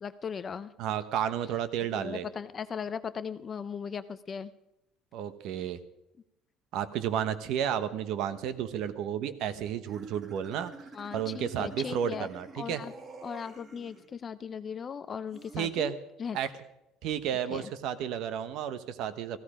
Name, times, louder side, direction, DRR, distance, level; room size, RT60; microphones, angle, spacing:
voice 1, 0.0-0.7 1.9-4.5 10.9-12.3 12.6-12.9 13.2-16.4 17.5-17.7, left 6 dB, 20° left, 13 dB, 0.5 m, -38 dB
voice 2, 0.8-2.2 5.1-5.8 6.7-10.7 11.1-12.8 15.5-15.9 16.3-16.5 17.0-19.4, right 9 dB, 55° right, 13 dB, 1.0 m, -32 dB
sound 1, 9.9-14.1 15.3-15.7, right 3 dB, 25° right, 1.6 m, -49 dB
16.0 x 15.5 x 5.0 m, 0.86 s
cardioid pair, 180°, 0 cm